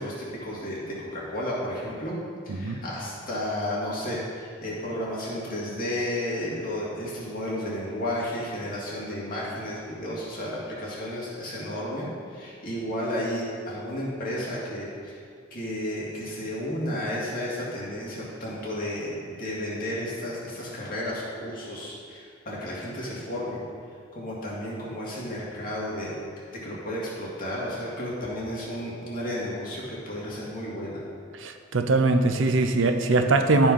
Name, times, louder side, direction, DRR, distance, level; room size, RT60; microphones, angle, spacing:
voice 1, 0.0-2.2 2.4-15.2 15.5-23.6 24.1-26.2 26.5-31.0, left 1 dB, 45° left, -6 dB, 2.5 m, -32 dB
voice 2, 2.5-2.8 31.3-33.7, right 3 dB, 80° right, 7 dB, 0.6 m, -22 dB
12.5 x 4.5 x 5.4 m, 2.2 s
head